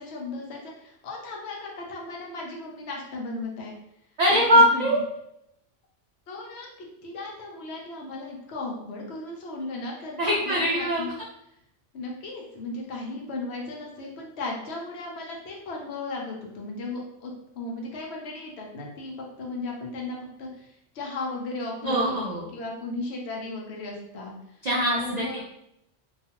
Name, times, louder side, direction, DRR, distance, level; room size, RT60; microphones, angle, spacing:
voice 1, 0.0-3.8 4.3-5.0 6.3-11.1 11.9-24.6 25.0-25.4, left 2 dB, 65° left, -1 dB, 0.8 m, -36 dB
voice 2, 4.2-5.0 10.2-11.1 21.8-22.5 24.6-25.4, equal, 65° right, -4 dB, 0.4 m, -22 dB
2.4 x 2.3 x 2.8 m, 0.78 s
omnidirectional pair, 1.3 m